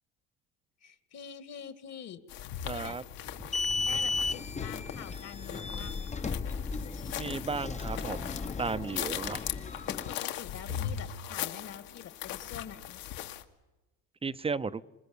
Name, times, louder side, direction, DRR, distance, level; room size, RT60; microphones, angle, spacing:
voice 1, 0.8-3.0 3.5-6.3 10.1-13.0, left 8 dB, 45° left, 11 dB, 1.9 m, -46 dB
sound 1, 2.3-13.4, left 11 dB, 70° left, 2.3 m, -39 dB
voice 2, 2.6-3.0 7.1-9.4 14.2-14.8, right 4 dB, 15° right, 14 dB, 0.8 m, -34 dB
sound 2, 3.3-10.1, left 4 dB, 20° left, 0.9 m, -35 dB
27.0 x 21.0 x 8.7 m, 1.1 s
supercardioid pair, 115°, 36 cm